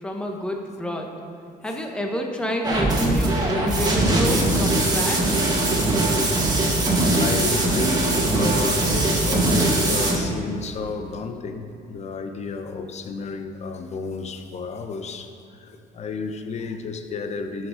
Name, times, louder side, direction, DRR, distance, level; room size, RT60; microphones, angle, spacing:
voice 1, 0.0-1.1 1.6-5.5, left 1 dB, 5° left, 1 dB, 1.1 m, -28 dB
sound 1, 2.6-10.2, right 2 dB, 25° right, 2.1 m, -21 dB
voice 2, 7.1-15.3 15.6-17.7, left 4 dB, 40° left, 7 dB, 0.9 m, -32 dB
12.5 x 6.4 x 5.0 m, 2.6 s
cardioid pair, 110°, 17 cm